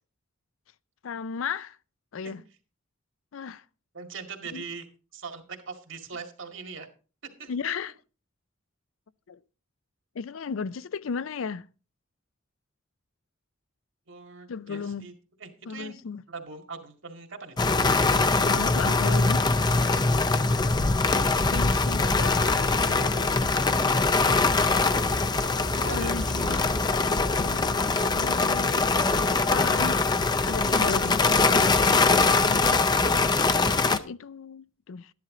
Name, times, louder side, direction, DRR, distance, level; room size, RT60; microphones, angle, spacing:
voice 1, 1.0-1.8 2.1-2.4 3.3-3.6 4.5-4.6 7.5-7.9 9.3-9.4 10.1-11.7 14.5-15.1 15.7-16.2 18.4-19.9 21.5-23.3 25.7-26.7 27.4-29.2 29.5-33.0 33.8-35.1, left 6 dB, 75° left, 0.5 m, -35 dB
voice 2, 3.9-4.9 5.1-6.9 7.4-7.5 14.1-15.1 15.4-16.0 16.3-17.7 25.8-26.7, right 4 dB, 65° right, 2.1 m, -41 dB
sound 1, 17.6-34.0, left 3 dB, 20° left, 0.5 m, -23 dB
oldskull chords, 22.5-29.5, right 1 dB, 80° right, 2.2 m, -47 dB
12.5 x 10.5 x 3.8 m
head